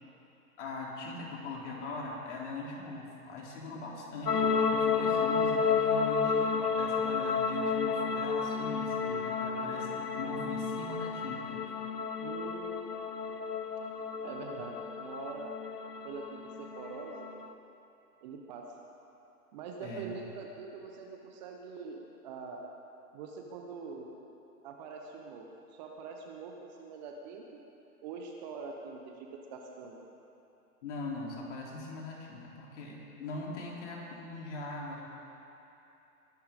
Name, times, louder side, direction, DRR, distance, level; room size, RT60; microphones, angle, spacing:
voice 1, 0.6-11.6 19.8-20.1 30.8-35.0, left 2 dB, 50° left, -3 dB, 3.3 m, -41 dB
sound 1, 4.3-17.5, left 5 dB, 90° left, 0.9 m, -31 dB
voice 2, 12.2-12.8 14.2-15.5 16.0-17.3 18.2-18.7 19.5-22.7 23.1-24.1 24.6-27.6 28.0-30.0, right 4 dB, 30° right, 1 dB, 1.0 m, -44 dB
21.5 x 11.5 x 3.7 m, 2.9 s
hypercardioid pair, 135°, 46 cm